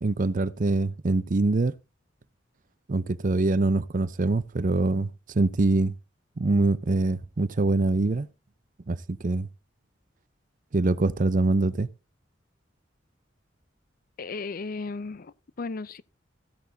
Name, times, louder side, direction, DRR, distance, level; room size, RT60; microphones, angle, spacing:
voice 1, 0.0-1.7 2.9-5.9 6.4-8.3 8.9-9.5 10.7-11.9, right 2 dB, 45° right, 0.6 m, -24 dB
voice 2, 14.2-16.0, left 3 dB, 50° left, 0.6 m, -35 dB
15.0 x 8.6 x 3.9 m
head